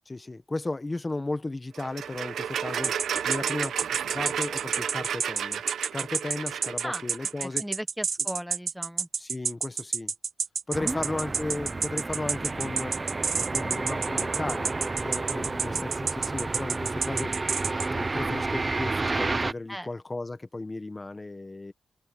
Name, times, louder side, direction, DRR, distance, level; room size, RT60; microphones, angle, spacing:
voice 1, 0.1-3.0 3.3-3.8 4.1-5.6 5.9-7.6 9.2-10.1 10.7-12.9 13.4-17.3 17.9-21.7, left 2 dB, 20° left, 1.3 m, -35 dB
sound 1, 1.7-7.4, right 8 dB, 85° right, 1.1 m, -32 dB
sound 2, 2.8-17.9, right 5 dB, 50° right, 1.4 m, -29 dB
voice 2, 6.8-9.1 10.8-11.0 19.7-19.9, equal, ahead, 1.3 m, -37 dB
sound 3, 10.7-19.5, right 3 dB, 25° right, 0.7 m, -31 dB
wide cardioid pair, 115°, 0 cm